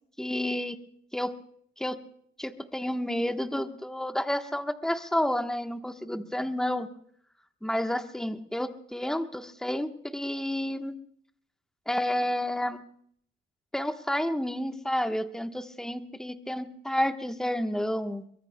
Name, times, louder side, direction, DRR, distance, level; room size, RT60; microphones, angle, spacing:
voice 1, 0.2-0.8 1.1-1.4 1.8-2.0 2.4-6.9 7.6-10.9 11.9-12.8 13.7-18.2, left 1 dB, 5° left, 7 dB, 1.1 m, -30 dB
23.5 x 22.5 x 2.2 m, 0.64 s
cardioid pair, 90°, 20 cm